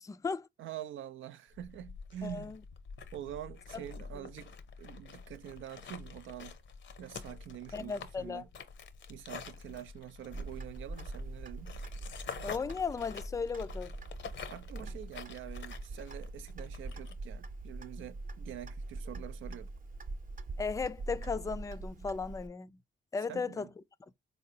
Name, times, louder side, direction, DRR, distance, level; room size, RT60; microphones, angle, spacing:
voice 1, 0.0-0.5 2.2-2.6 3.7-3.8 7.7-8.4 12.4-13.9 20.6-22.7 23.1-23.7, left 5 dB, 15° left, 0.3 m, -36 dB
voice 2, 0.6-2.6 3.1-6.6 7.0-8.5 9.1-11.7 14.5-19.7 23.3-23.7, right 11 dB, 80° right, 0.4 m, -46 dB
sound 1, 1.5-17.1, left 6 dB, 65° left, 0.7 m, -47 dB
Clock, 10.3-22.5, right 2 dB, 45° right, 0.7 m, -43 dB
3.9 x 2.8 x 2.7 m
cardioid pair, 55°, 20 cm